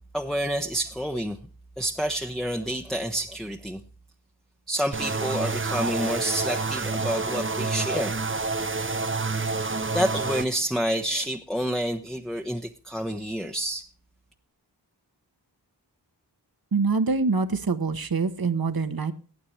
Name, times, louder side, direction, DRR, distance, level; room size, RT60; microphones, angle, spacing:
voice 1, 0.1-1.4 1.8-3.8 4.7-8.1 9.6-13.8, equal, ahead, 2 dB, 1.0 m, -29 dB
sound 1, 4.9-10.4, right 3 dB, 30° right, 0.8 m, -28 dB
voice 2, 16.7-19.1, right 4 dB, 55° right, 10 dB, 1.2 m, -25 dB
18.5 x 8.7 x 3.2 m, 0.38 s
wide cardioid pair, 55°, 42 cm